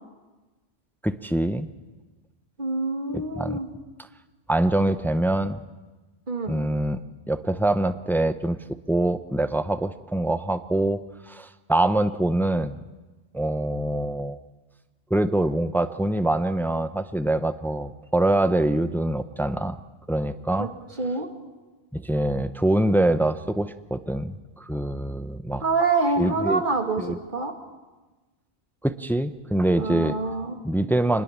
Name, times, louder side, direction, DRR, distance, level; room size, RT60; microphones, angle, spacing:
voice 1, 1.0-1.7 3.4-3.6 4.5-5.6 6.5-7.0 7.3-8.6 8.9-12.8 13.3-14.4 15.1-19.8 20.1-20.7 21.9-25.6 26.2-26.6 27.0-27.2 28.8-30.2 30.6-31.2, right 1 dB, ahead, 11 dB, 0.5 m, -24 dB
voice 2, 2.6-3.7 6.3-6.5 20.6-20.7 21.0-21.3 25.6-27.5 29.8-30.6, right 3 dB, 50° right, 4 dB, 2.4 m, -26 dB
25.0 x 21.0 x 7.3 m, 1.2 s
omnidirectional pair, 1.1 m